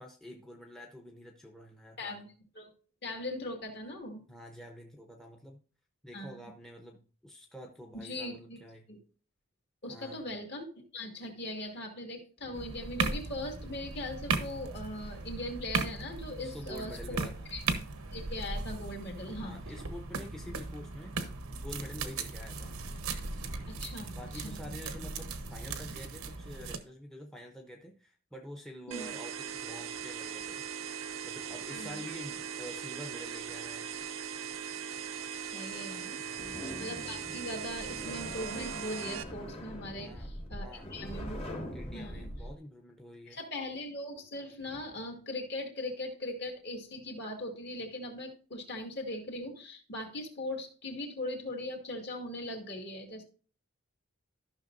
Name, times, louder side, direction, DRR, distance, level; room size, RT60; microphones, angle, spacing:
voice 1, 0.0-2.2 4.3-5.6 6.0-8.9 9.9-10.2 16.4-17.5 19.3-21.2 21.5-22.8 24.1-30.6 31.2-33.9 36.2-36.6 39.9-40.3 40.6-40.9 41.7-43.4, equal, ahead, 3 dB, 0.7 m, -47 dB
voice 2, 3.0-4.2 6.1-6.5 7.9-8.6 8.9-9.0 9.8-17.2 17.5-17.6 18.1-19.6 23.7-24.6 28.9-29.1 31.7-32.0 35.3-36.2 36.8-41.4 41.9-42.3 43.3-53.2, left 1 dB, 50° left, 2 dB, 2.0 m, -40 dB
sound 1, 12.5-26.8, right 4 dB, 85° right, 1.0 m, -37 dB
sound 2, 28.9-39.2, right 8 dB, 70° right, 0.6 m, -40 dB
sound 3, 36.4-42.5, equal, 25° left, 1.2 m, -42 dB
13.5 x 6.0 x 2.6 m, 0.40 s
head